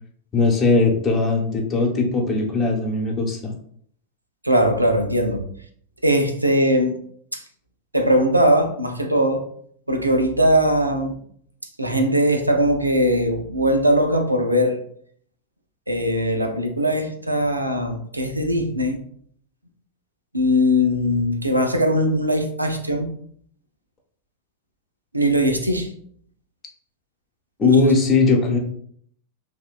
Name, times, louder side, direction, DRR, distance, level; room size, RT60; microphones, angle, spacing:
voice 1, 0.3-3.5 27.6-28.6, left 3 dB, 25° left, 0 dB, 0.7 m, -19 dB
voice 2, 4.4-5.4 6.0-6.9 7.3-7.4 7.9-9.4 9.9-11.2 11.8-14.8 15.9-19.0 20.3-23.1 25.1-25.9 27.6-27.8, equal, 85° right, 5 dB, 0.3 m, -20 dB
3.0 x 2.1 x 2.3 m, 0.62 s
figure-of-eight pair, 90°, 0 cm